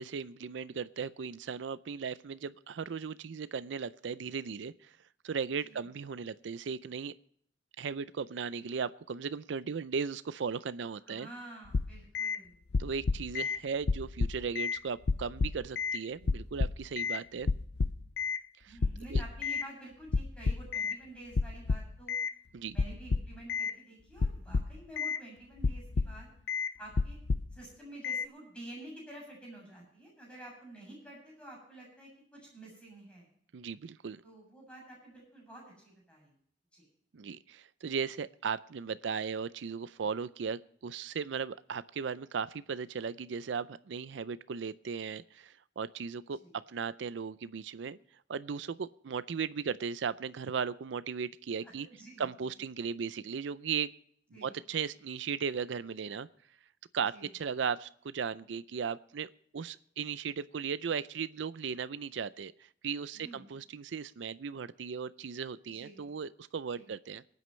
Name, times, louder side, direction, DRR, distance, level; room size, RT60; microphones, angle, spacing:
voice 1, 0.0-5.0 5.2-7.1 7.8-11.3 12.8-17.5 18.6-18.8 19.1-19.2 22.5-22.8 33.5-34.2 37.1-46.4 46.7-48.0 48.3-51.9 52.2-53.9 54.4-56.3 56.9-67.2, right 6 dB, 80° right, 15 dB, 0.5 m, -37 dB
voice 2, 11.1-12.6 18.6-22.1 22.7-27.2 27.5-33.3 34.2-36.3 36.7-36.9 46.4-46.6 51.6-52.5 54.3-54.5 57.1-57.3 63.1-63.5 65.7-66.1 66.7-66.9, right 1 dB, 5° left, -3 dB, 7.4 m, -50 dB
sound 1, 11.7-12.4 12.7-13.6 13.9-14.8 15.1-16.0 16.3-17.2 17.5-18.4 18.8-19.7 20.1-21.0 21.4-22.3 22.8-23.7 24.2-25.2 25.6-26.2 26.5-26.7 27.0-27.6 28.0-28.3, left 4 dB, 65° left, 0.5 m, -30 dB
25.0 x 9.3 x 3.2 m, 0.64 s
head